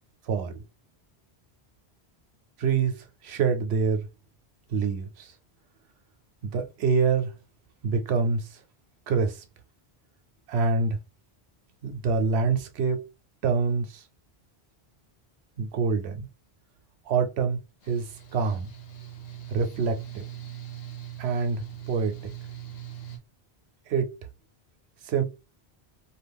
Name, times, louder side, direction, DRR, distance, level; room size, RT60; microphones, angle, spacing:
voice 1, 0.3-0.6 2.6-3.0 3.2-4.1 4.7-5.3 6.4-7.3 7.8-8.5 9.1-9.4 10.5-11.0 11.8-13.0 13.4-14.0 15.6-16.3 17.1-17.6 17.9-18.1 18.3-18.7 19.5-20.2 21.2-22.1 23.9-24.1 25.1-25.2, right 5 dB, 90° right, 0.9 m, -25 dB
Mechanical fan, 17.8-23.2, right 11 dB, 70° left, 0.9 m, -41 dB
2.5 x 2.4 x 3.4 m
omnidirectional pair, 1.1 m